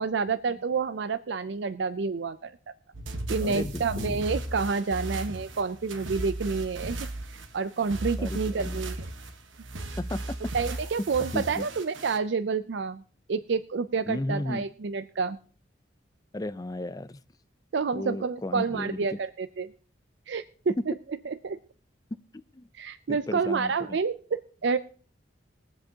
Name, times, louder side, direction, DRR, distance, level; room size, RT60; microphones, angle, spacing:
voice 1, 0.0-2.5 3.3-7.1 7.5-9.0 10.5-13.0 13.3-15.4 17.7-19.7 20.3-20.4 21.4-21.6 22.8-24.8, right 5 dB, 65° right, 11 dB, 0.4 m, -29 dB
sound 1, 2.9-12.2, right 1 dB, 80° right, 1.2 m, -36 dB
voice 2, 3.4-4.2 8.2-8.8 10.0-10.4 11.3-11.6 14.1-14.7 16.3-17.2 17.9-19.2 20.8-20.9 22.1-22.7 23.1-24.0, left 1 dB, 20° left, 15 dB, 0.4 m, -34 dB
22.0 x 7.8 x 2.8 m, 0.42 s
head